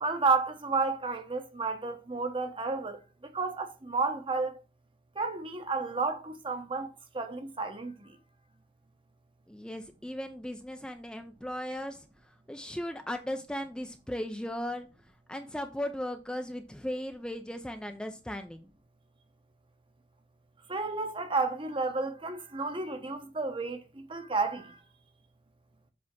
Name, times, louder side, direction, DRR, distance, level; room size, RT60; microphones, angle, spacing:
voice 1, 0.0-3.0 3.2-4.6 5.2-8.1 20.7-23.8 24.1-24.8, right 3 dB, 30° right, 1.0 m, -31 dB
voice 2, 9.5-12.1 12.5-14.9 15.3-18.7, left 1 dB, 5° left, 0.5 m, -37 dB
7.6 x 3.5 x 5.9 m
head